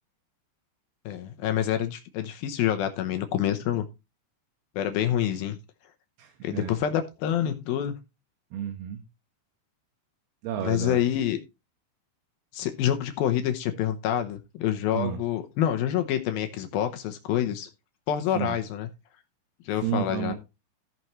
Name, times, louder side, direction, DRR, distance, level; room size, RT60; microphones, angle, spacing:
voice 1, 1.1-3.9 4.8-5.6 6.4-8.0 10.6-11.4 12.5-17.7 18.1-18.9 19.7-20.3, left 11 dB, 80° left, 7 dB, 2.2 m, -27 dB
voice 2, 6.2-6.8 8.5-9.0 10.4-11.0 14.9-15.2 18.3-18.5 19.8-20.3, right 10 dB, 70° right, 5 dB, 2.9 m, -31 dB
16.0 x 6.0 x 3.1 m, 0.26 s
omnidirectional pair, 5.3 m